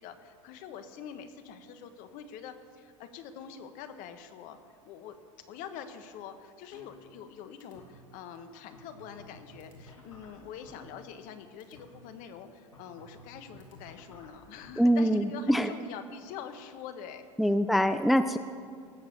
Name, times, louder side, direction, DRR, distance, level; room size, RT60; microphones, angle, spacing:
voice 1, 0.0-4.6 4.8-5.2 5.5-17.3 17.7-18.0, left 8 dB, 55° left, 9 dB, 1.4 m, -45 dB
sound 1, 6.7-7.3 7.6-7.9 8.4-8.5 8.7-11.3 11.6-11.9 12.7-14.7, left 1 dB, 85° left, 2.6 m, -53 dB
voice 2, 14.8-15.7 17.4-18.4, equal, ahead, 10 dB, 0.5 m, -24 dB
19.0 x 7.4 x 7.2 m, 2.1 s
hypercardioid pair, 85°, 17 cm